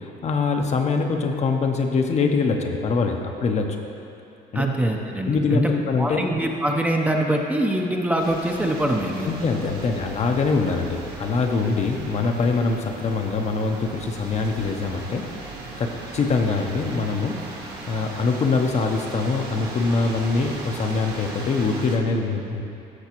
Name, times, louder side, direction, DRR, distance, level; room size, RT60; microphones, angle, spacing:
voice 1, 0.0-3.8 4.5-4.6 5.3-6.2 9.2-15.3 15.8-17.4 17.9-22.6, left 4 dB, 40° left, 3 dB, 0.7 m, -23 dB
voice 2, 4.5-5.7 6.0-9.3, right 1 dB, 10° right, 1 dB, 0.6 m, -23 dB
sound 1, 8.2-22.0, right 2 dB, 80° right, 1.6 m, -38 dB
14.0 x 5.9 x 3.0 m, 2.8 s
cardioid pair, 110°, 17 cm